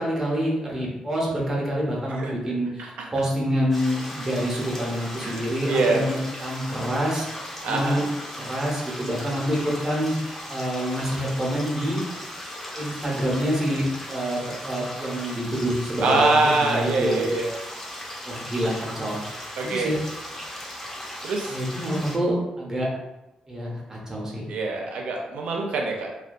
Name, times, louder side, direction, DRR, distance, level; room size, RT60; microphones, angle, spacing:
voice 1, 0.0-8.0 8.4-10.1 10.5-12.0 12.7-16.4 16.6-17.2 18.3-20.0 21.5-22.9 23.5-24.5, equal, 25° right, -4 dB, 0.6 m, -27 dB
sound 1, 3.7-22.2, equal, 15° left, 0.6 m, -37 dB
voice 2, 5.2-6.1 7.6-8.0 16.0-17.5 19.6-19.9 21.2-21.6 24.5-26.1, right 3 dB, 75° right, 1 dB, 0.5 m, -24 dB
2.2 x 2.2 x 2.5 m, 1.0 s
cardioid pair, 110°, 2 cm